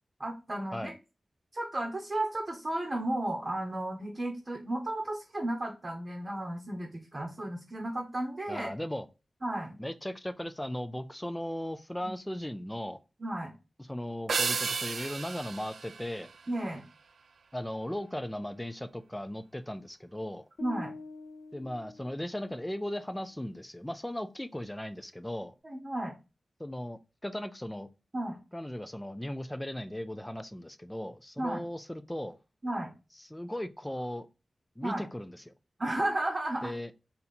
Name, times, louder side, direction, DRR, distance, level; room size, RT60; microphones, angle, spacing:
voice 1, 0.2-0.9 1.5-8.7 9.4-9.8 12.0-12.1 13.2-13.5 16.5-16.8 20.6-20.9 25.6-26.1 28.1-28.4 31.4-31.6 32.6-32.9 34.8-35.1 35.8-36.7, right 1 dB, 35° right, 0.8 m, -33 dB
voice 2, 8.5-9.1 9.8-13.0 13.8-16.3 17.5-20.4 21.5-25.5 26.6-27.9 28.5-32.4 33.2-34.3 34.8-35.5 36.6-36.9, left 1 dB, 10° left, 0.3 m, -37 dB
sound 1, 14.3-16.9, right 5 dB, 85° right, 0.3 m, -34 dB
sound 2, 20.6-22.8, left 3 dB, 60° left, 0.6 m, -47 dB
4.1 x 2.8 x 4.0 m
wide cardioid pair, 110°, 0 cm